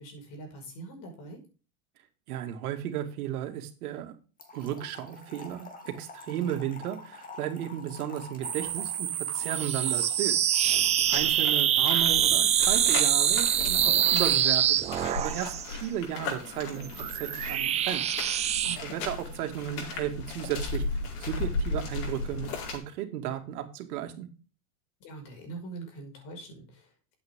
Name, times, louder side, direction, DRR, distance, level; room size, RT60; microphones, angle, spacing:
voice 1, 0.0-1.4 6.3-6.6 18.6-19.1 25.0-27.1, right 3 dB, 45° left, 2 dB, 5.9 m, -44 dB
voice 2, 2.3-4.1 4.5-10.4 10.7-15.5 15.8-16.9 17.1-18.0 18.8-20.8 21.2-24.3, right 11 dB, 80° right, 6 dB, 2.4 m, -34 dB
Trickle dribble / Fill (with liquid), 4.4-11.5, left 3 dB, 20° left, 2.5 m, -47 dB
sound 1, 8.4-15.7 16.6-18.8, right 10 dB, 15° right, 0.4 m, -25 dB
sound 2, 11.0-22.8, left 4 dB, 80° left, 4.9 m, -36 dB
11.5 x 8.5 x 3.7 m, 0.35 s
supercardioid pair, 155°, 44 cm